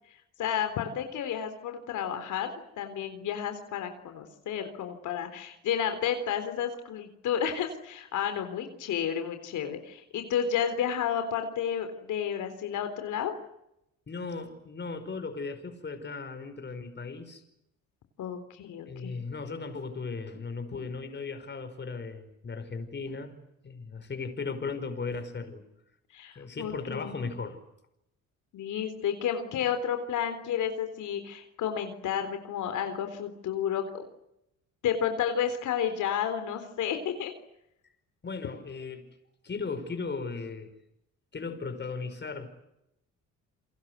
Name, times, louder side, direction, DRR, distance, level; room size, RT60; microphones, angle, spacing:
voice 1, 0.4-2.5 2.8-13.4 18.2-19.2 26.1-27.3 28.5-34.0 34.8-37.3, left 8 dB, 80° left, 3.8 m, -31 dB
voice 2, 14.1-17.4 18.9-23.3 23.6-25.6 26.4-27.6 38.2-39.2 39.4-40.7 41.3-42.5, left 4 dB, 35° left, 5.4 m, -37 dB
29.5 x 23.5 x 8.2 m
cardioid pair, 90°, 30 cm